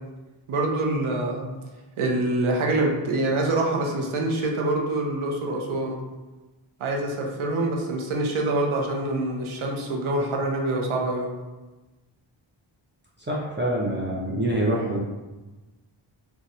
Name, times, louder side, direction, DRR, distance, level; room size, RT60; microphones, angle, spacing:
voice 1, 0.5-1.5 2.0-6.0 6.8-11.3, right 2 dB, 80° right, 0 dB, 0.7 m, -25 dB
voice 2, 13.3-15.0, right 1 dB, 25° right, -4 dB, 0.5 m, -25 dB
2.6 x 2.3 x 4.1 m, 1.2 s
wide cardioid pair, 80°, 49 cm